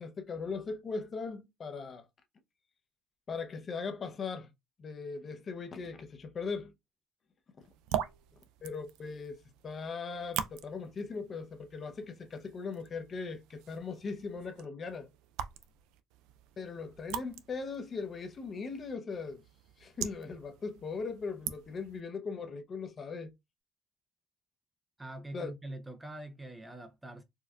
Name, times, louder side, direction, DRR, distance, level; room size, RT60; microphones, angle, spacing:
voice 1, 0.0-2.0 3.3-4.5 4.8-6.7 8.6-15.1 16.6-19.4 19.8-23.3 25.3-25.5, left 4 dB, 35° left, 0.6 m, -39 dB
sound 1, 7.6-22.0, right 10 dB, 85° right, 0.3 m, -43 dB
voice 2, 25.0-27.2, right 1 dB, 10° right, 0.4 m, -44 dB
4.4 x 2.2 x 2.3 m
cardioid pair, 110°, 0 cm